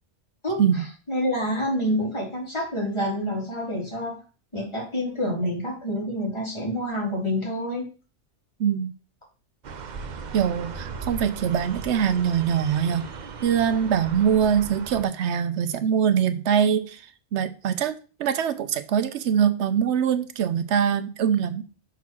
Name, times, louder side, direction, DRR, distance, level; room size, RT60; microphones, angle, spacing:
voice 1, 1.1-4.1 4.5-7.8, equal, 25° left, -4 dB, 3.0 m, -27 dB
voice 2, 8.6-8.9 10.3-13.1 13.4-21.6, right 8 dB, 75° right, 12 dB, 0.9 m, -23 dB
sound 1, 9.6-15.0, right 5 dB, 50° right, 0.6 m, -37 dB
6.1 x 3.6 x 5.8 m, 0.35 s
omnidirectional pair, 1.2 m